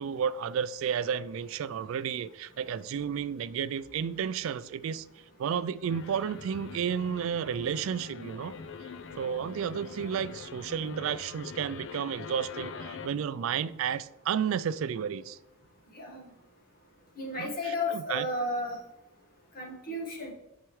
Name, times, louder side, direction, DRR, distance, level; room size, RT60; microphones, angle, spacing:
voice 1, 0.0-5.1 5.4-8.5 9.2-15.4 17.4-18.3, right 7 dB, 65° right, 0.3 m, -32 dB
sound 1, 5.9-13.1, left 5 dB, 60° left, 0.5 m, -44 dB
voice 2, 15.9-16.3 17.2-18.8 19.5-20.3, left 1 dB, 40° left, 1.6 m, -33 dB
9.2 x 4.7 x 3.2 m
head